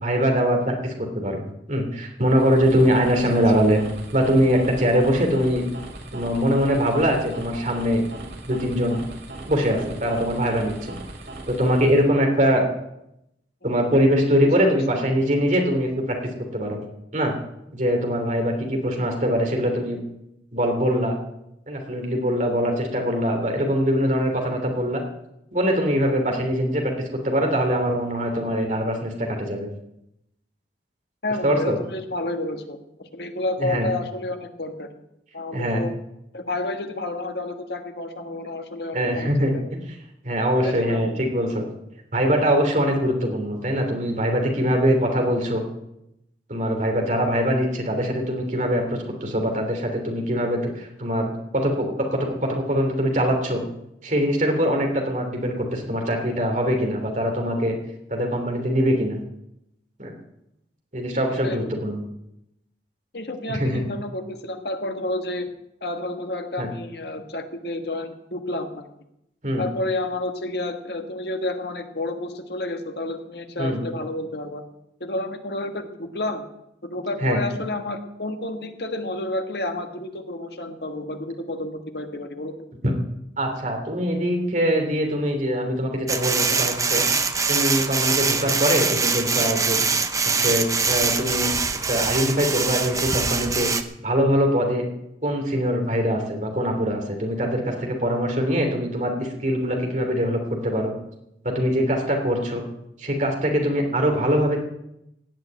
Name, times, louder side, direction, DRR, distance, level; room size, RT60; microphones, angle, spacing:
voice 1, 0.0-1.4 1.7-3.8 4.1-5.6 6.1-8.0 8.5-9.0 9.4-10.9 11.5-12.6 13.6-15.9 16.5-16.8 17.1-17.3 17.7-20.0 20.5-21.1 21.7-25.0 25.5-26.8 27.2-29.1 29.4-29.7 31.4-31.7 33.6-33.9 35.5-35.9 38.9-39.8 40.2-41.6 42.1-45.6 46.5-51.9 52.2-53.6 54.0-57.8 58.1-59.2 60.0-60.1 60.9-62.0 63.5-63.8 66.6-66.7 69.4-69.7 73.6-73.8 77.2-77.4 82.8-82.9 83.4-87.0 87.5-89.8 90.4-91.5 91.9-93.7 94.0-94.8 95.2-100.9 101.4-102.6 103.0-104.6, equal, 45° right, 2 dB, 3.2 m, -22 dB
sound 1, 2.2-12.1, right 2 dB, 70° right, 3.7 m, -39 dB
voice 2, 3.1-3.4 13.9-14.0 14.6-14.8 31.2-34.9 35.3-35.9 36.3-39.7 40.6-41.2 61.3-61.8 63.1-65.5 65.8-68.9 69.6-74.6 75.0-76.4 76.8-82.6, left 2 dB, 65° left, 6 dB, 1.5 m, -30 dB
sound 2, 86.1-93.8, right 5 dB, 20° right, 0.8 m, -23 dB
17.0 x 6.7 x 9.5 m, 0.83 s
head